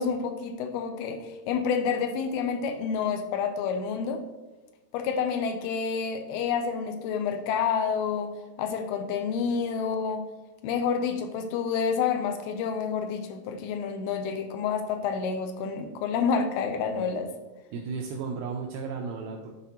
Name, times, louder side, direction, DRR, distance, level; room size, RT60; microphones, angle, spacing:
voice 1, 0.0-4.2 4.9-8.3 8.6-10.2 10.6-17.3, left 6 dB, 80° left, 7 dB, 2.5 m, -29 dB
voice 2, 17.7-19.6, right 5 dB, 80° right, 0 dB, 2.4 m, -34 dB
11.0 x 4.2 x 2.8 m, 1.1 s
omnidirectional pair, 4.6 m